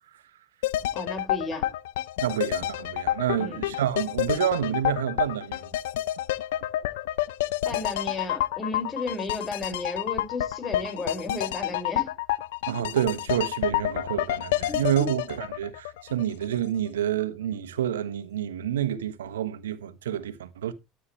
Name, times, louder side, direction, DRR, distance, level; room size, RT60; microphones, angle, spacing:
sound 1, 0.6-16.6 16.9-17.0, left 14 dB, 80° left, 0.6 m, -29 dB
voice 1, 0.9-1.7 3.4-3.6 7.6-12.1 14.7-14.8, left 2 dB, 30° left, 5.8 m, -33 dB
voice 2, 2.2-5.6 12.7-20.7, right 10 dB, 90° right, 1.2 m, -28 dB
13.5 x 9.2 x 3.3 m
hypercardioid pair, 80°, 0 cm